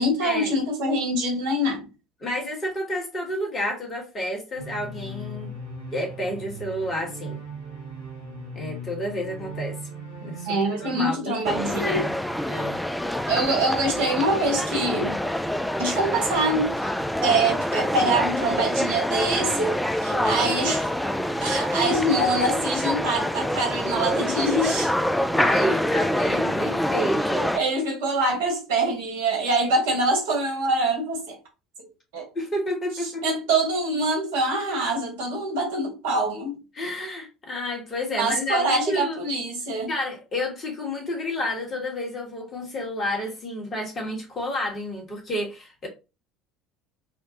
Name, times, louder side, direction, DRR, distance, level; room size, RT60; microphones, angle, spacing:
voice 1, 0.0-1.9 10.5-12.0 13.3-15.2 15.8-16.9 17.2-19.7 20.0-20.9 21.4-24.9 27.5-31.4 32.1-32.3 33.2-36.5 38.1-39.9, right 2 dB, 65° right, 1.4 m, -24 dB
voice 2, 2.2-5.5 5.9-7.5 8.5-9.8 10.2-12.2 12.5-12.8 25.3-27.5 32.3-33.4 36.7-39.2 39.9-45.9, left 1 dB, 30° left, 1.3 m, -30 dB
sound 1, 4.6-11.2, right 1 dB, 80° left, 1.2 m, -38 dB
sound 2, 11.4-27.6, equal, 5° left, 0.3 m, -26 dB
5.6 x 2.1 x 2.8 m
figure-of-eight pair, 65°, 0 cm